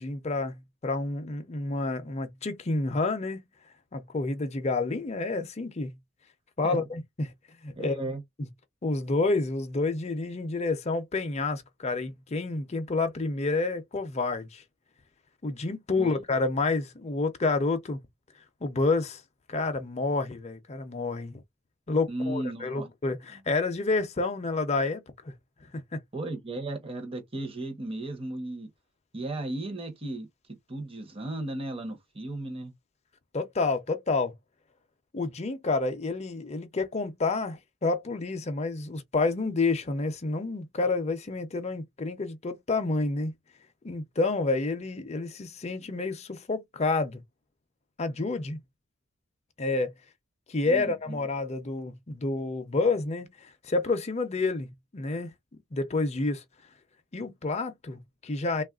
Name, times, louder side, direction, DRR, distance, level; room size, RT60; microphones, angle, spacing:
voice 1, 0.0-3.4 3.9-5.9 6.6-7.3 7.6-7.9 8.4-8.5 8.8-14.6 15.4-18.0 18.6-19.2 19.5-21.4 21.9-25.3 25.7-26.0 33.3-34.3 35.1-43.3 43.8-47.2 48.0-48.6 49.6-49.9 50.5-55.3 55.7-56.4 57.1-58.6, left 3 dB, 30° left, 0.5 m, -29 dB
voice 2, 7.8-8.2 16.0-16.2 22.1-22.9 26.1-28.7 29.1-30.3 30.7-32.7 50.6-51.2, right 2 dB, 25° right, 0.8 m, -35 dB
3.3 x 2.4 x 2.3 m
head